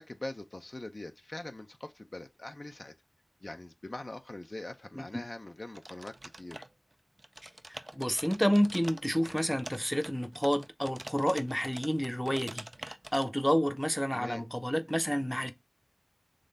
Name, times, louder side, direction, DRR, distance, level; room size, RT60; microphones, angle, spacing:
voice 1, 0.0-2.9 3.4-6.6 14.1-14.4, left 2 dB, 65° left, 0.6 m, -43 dB
sound 1, 5.7-6.9 7.2-13.2, right 1 dB, 50° right, 0.5 m, -46 dB
voice 2, 7.4-15.5, equal, 5° left, 0.7 m, -30 dB
3.8 x 3.2 x 3.9 m
wide cardioid pair, 45°, 0 cm